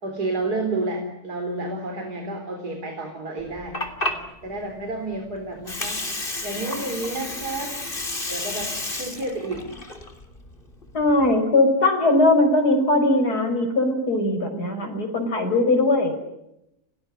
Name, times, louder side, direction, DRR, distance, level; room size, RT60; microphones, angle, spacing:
voice 1, 0.0-3.8 4.4-6.1 6.4-7.7 8.3-9.7, right 2 dB, 85° right, 3 dB, 4.4 m, -30 dB
Water, 3.4-11.3, left 2 dB, 35° left, 3.3 m, -32 dB
voice 2, 10.9-16.1, left 2 dB, 90° left, 4 dB, 5.7 m, -20 dB
29.5 x 19.5 x 9.9 m, 0.86 s
omnidirectional pair, 1.6 m